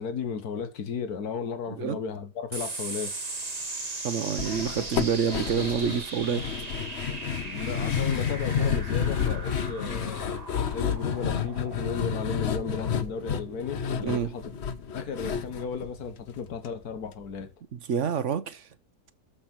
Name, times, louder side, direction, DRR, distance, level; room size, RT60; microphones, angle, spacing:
voice 1, 0.0-3.1 7.4-10.4 10.7-14.4 14.9-17.5, left 6 dB, 75° left, 1.9 m, -34 dB
voice 2, 1.7-2.0 4.0-6.5 14.0-14.3 17.7-18.7, right 7 dB, 55° right, 1.0 m, -28 dB
sound 1, 2.5-17.3, right 3 dB, 25° right, 1.5 m, -40 dB
sound 2, 4.4-16.7 16.9-17.0 17.4-17.5, left 7 dB, 50° left, 1.0 m, -30 dB
13.0 x 5.8 x 4.6 m
omnidirectional pair, 1.7 m